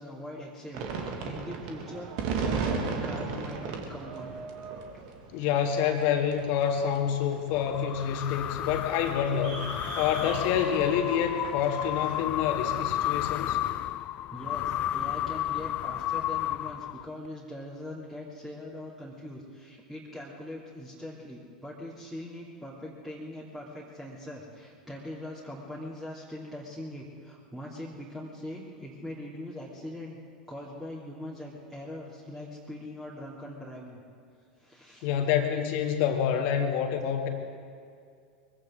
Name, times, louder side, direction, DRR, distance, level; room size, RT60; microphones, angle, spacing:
voice 1, 0.0-2.1 2.3-4.4 5.2-5.4 14.3-30.2 30.5-34.0 34.6-35.1, left 1 dB, 5° right, -7 dB, 3.0 m, -42 dB
sound 1, 0.7-12.2, right 5 dB, 55° right, 2.2 m, -36 dB
voice 2, 5.3-9.6 10.0-13.6 35.0-37.3, left 8 dB, 50° left, 4 dB, 2.0 m, -27 dB
sound 2, 7.5-17.3, left 13 dB, 35° left, 0.3 m, -32 dB
23.0 x 16.0 x 3.9 m, 2.3 s
hypercardioid pair, 90°, 4 cm